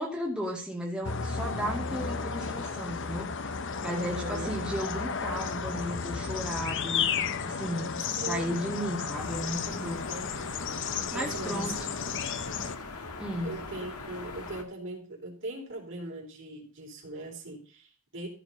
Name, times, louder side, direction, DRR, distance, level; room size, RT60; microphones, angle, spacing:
voice 1, 0.0-3.3 3.8-10.0 11.1-11.8 13.2-13.5, equal, 5° right, -3 dB, 2.4 m, -34 dB
sound 1, 1.0-12.8, left 5 dB, 55° left, 0.8 m, -33 dB
voice 2, 3.9-4.6 8.1-8.5 10.1-10.5 11.1-11.7 13.4-18.3, right 1 dB, 55° right, 0 dB, 4.2 m, -40 dB
sound 2, 9.2-14.6, left 3 dB, 85° left, 1.7 m, -41 dB
14.5 x 5.1 x 5.5 m, 0.40 s
head